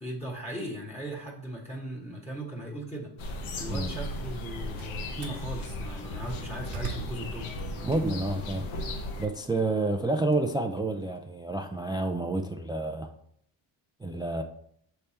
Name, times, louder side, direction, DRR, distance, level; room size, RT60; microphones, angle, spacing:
voice 1, 0.0-3.1 3.6-7.5, right 1 dB, 15° left, 1.3 m, -38 dB
sound 1, 3.2-9.3, left 1 dB, 80° left, 1.1 m, -36 dB
Slam, 4.3-5.5 6.0-8.4 8.8-11.2, right 6 dB, 60° right, 1.3 m, -43 dB
voice 2, 7.8-13.1 14.0-14.4, right 2 dB, 10° right, 0.3 m, -29 dB
6.6 x 3.4 x 4.3 m
cardioid pair, 85°, 47 cm